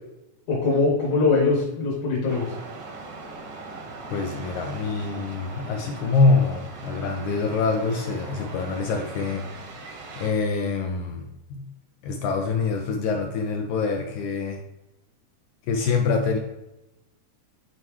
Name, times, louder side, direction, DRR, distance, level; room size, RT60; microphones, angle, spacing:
voice 1, 0.5-2.5, left 3 dB, 65° left, -3 dB, 2.5 m, -22 dB
sound 1, 2.3-10.3, right 3 dB, 70° right, 1.4 m, -40 dB
voice 2, 4.1-9.7 10.2-11.6 12.0-14.6 15.7-16.4, left 4 dB, 80° left, 3 dB, 1.7 m, -25 dB
7.7 x 4.2 x 3.1 m, 0.94 s
omnidirectional pair, 3.9 m